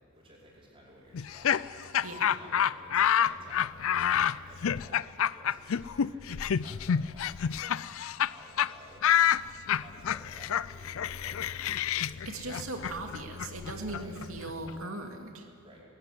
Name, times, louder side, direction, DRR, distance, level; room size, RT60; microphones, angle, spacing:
voice 1, 0.1-7.9 8.2-9.3 9.6-12.2 13.9-14.2 15.6-15.8, equal, 25° right, -4 dB, 5.2 m, -55 dB
Laughter, 1.1-8.3 8.6-8.7 9.0-14.7, left 9 dB, 65° left, 0.4 m, -28 dB
voice 2, 2.0-2.4 12.3-15.4, right 2 dB, 70° right, 3 dB, 2.5 m, -39 dB
20.5 x 15.5 x 9.8 m, 2.2 s
head